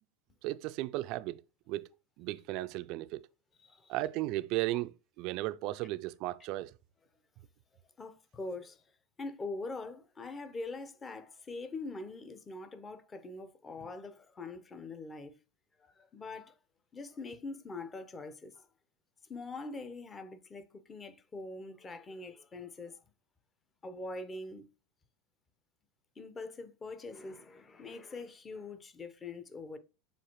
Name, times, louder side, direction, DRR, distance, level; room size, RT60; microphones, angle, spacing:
voice 1, 0.4-1.4 1.7-1.9 2.2-3.3 3.9-6.7, right 17 dB, 55° right, 0.3 m, -35 dB
voice 2, 3.6-4.0 8.0-8.8 9.2-15.3 15.8-16.6 16.9-18.7 19.3-23.0 23.8-24.7 26.2-29.8, left 3 dB, 25° left, 0.7 m, -43 dB
7.2 x 2.5 x 2.9 m
hypercardioid pair, 85°, 0 cm